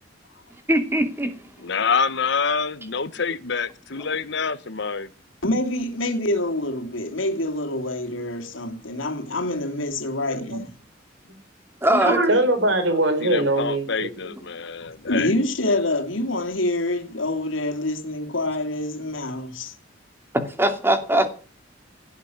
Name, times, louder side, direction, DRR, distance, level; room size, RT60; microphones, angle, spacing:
voice 1, 0.7-1.3 4.0-4.1 11.8-12.2 20.3-21.3, right 1 dB, 10° right, 2.5 m, -21 dB
voice 2, 1.6-5.1 12.9-15.4, left 5 dB, 65° left, 1.1 m, -27 dB
voice 3, 5.4-10.7 14.8-19.7, left 1 dB, 85° left, 3.0 m, -26 dB
voice 4, 11.9-14.4, right 1 dB, 65° right, 4.5 m, -22 dB
17.0 x 8.4 x 9.4 m
head